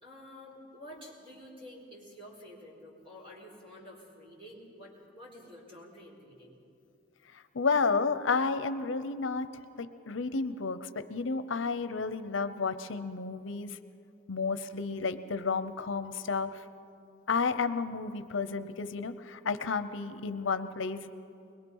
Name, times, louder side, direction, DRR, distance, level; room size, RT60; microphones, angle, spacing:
voice 1, 0.0-6.6, left 1 dB, 25° right, -3 dB, 4.1 m, -50 dB
voice 2, 7.3-9.5 9.8-13.8 14.3-16.6 17.3-21.1, left 4 dB, 80° left, 12 dB, 0.7 m, -31 dB
22.0 x 21.5 x 5.5 m, 2.6 s
head